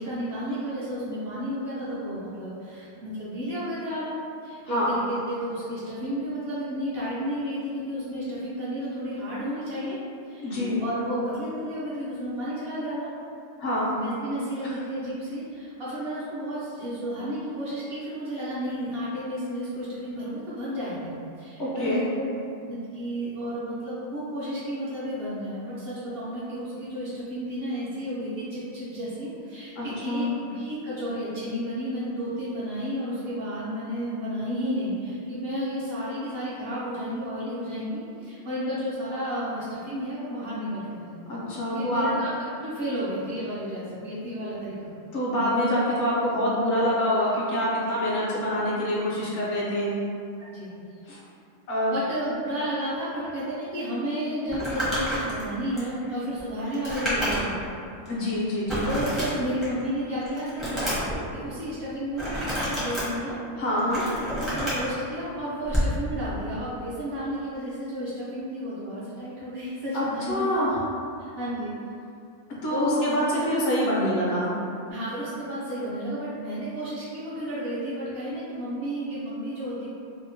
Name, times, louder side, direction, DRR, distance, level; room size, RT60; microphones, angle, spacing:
voice 1, 0.0-4.1 4.4-10.0 10.3-13.1 13.9-22.3 22.7-41.3 41.7-42.4 42.6-44.9 50.5-51.0 51.9-57.6 58.8-60.9 61.3-63.4 64.2-70.5 71.2-71.7 72.7-73.5 74.9-79.9, equal, 60° right, -9 dB, 0.7 m, -32 dB
voice 2, 10.4-10.8 13.6-13.9 21.6-22.0 29.8-30.3 41.3-42.1 45.1-49.9 51.1-51.2 51.7-51.9 58.1-58.9 63.6-64.0 69.9-70.8 72.6-74.5, equal, 65° left, -6 dB, 0.9 m, -26 dB
Crumpling crinkling, 54.5-57.7 58.0-58.1 58.7-59.8 60.2-61.2 62.1-63.0 63.7-64.9 65.7-65.9, equal, ahead, 0.5 m, -29 dB
2.8 x 2.0 x 2.6 m, 2.5 s
omnidirectional pair, 1.4 m